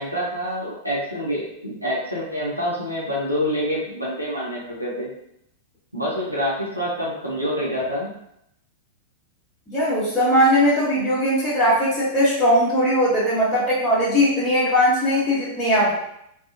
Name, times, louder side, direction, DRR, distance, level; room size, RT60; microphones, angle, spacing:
voice 1, 0.0-5.1 5.9-8.1, equal, 90° right, -5 dB, 0.6 m, -26 dB
voice 2, 9.7-15.9, equal, 15° left, -13 dB, 1.0 m, -19 dB
2.7 x 2.3 x 2.4 m, 0.77 s
figure-of-eight pair, 95°, 0 cm